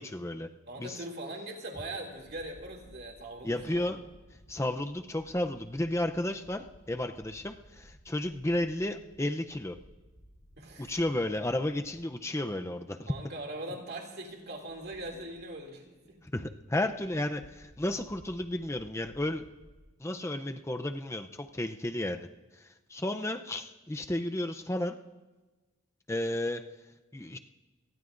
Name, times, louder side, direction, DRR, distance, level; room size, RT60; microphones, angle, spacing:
voice 1, 0.0-0.5 0.8-1.0 3.4-4.0 4.5-9.8 10.8-13.1 16.3-19.4 20.0-22.3 22.9-25.0 26.1-26.6 27.1-27.4, left 1 dB, 15° left, 7 dB, 0.6 m, -32 dB
voice 2, 0.7-3.9 10.6-11.0 13.1-16.2, right 1 dB, 50° right, 1 dB, 2.6 m, -41 dB
sound 1, 2.1-12.7 13.0-13.1 14.2-19.9, equal, 55° left, 6.4 m, -58 dB
27.5 x 19.0 x 2.6 m, 1.2 s
head